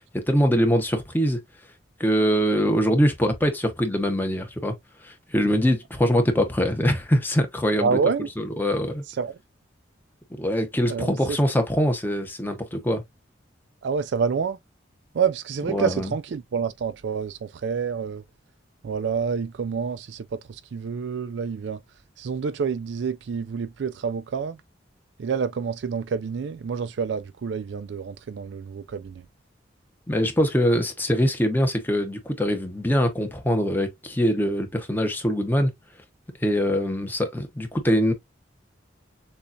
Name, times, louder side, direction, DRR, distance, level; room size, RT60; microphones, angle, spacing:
voice 1, 0.1-1.4 2.0-4.7 5.0-8.0 8.4-9.0 10.3-13.0 15.7-16.1 30.1-35.7 36.4-38.1, equal, 10° left, 0.9 m, -23 dB
voice 2, 7.8-8.3 9.1-9.4 10.9-11.4 13.8-14.6 15.1-18.2 18.8-21.8 22.2-24.6 25.2-29.2, right 6 dB, 70° right, 0.4 m, -28 dB
6.8 x 2.4 x 2.5 m
head